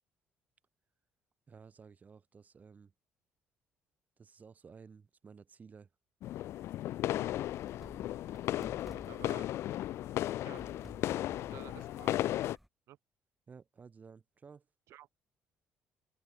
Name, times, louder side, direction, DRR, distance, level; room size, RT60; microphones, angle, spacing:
voice 1, 1.5-2.9 4.2-5.9 9.1-9.4 13.5-14.7, right 5 dB, 35° right, 2.3 m, -55 dB
sound 1, 6.2-12.6, left 13 dB, 70° left, 0.4 m, -35 dB
sound 2, 7.2-12.7, equal, ahead, 1.4 m, -55 dB
voice 2, 9.1-9.5 10.4-10.6 11.5-12.6 12.9-13.0 14.9-15.1, right 14 dB, 75° right, 2.6 m, -52 dB
cardioid pair, 95°, 5 cm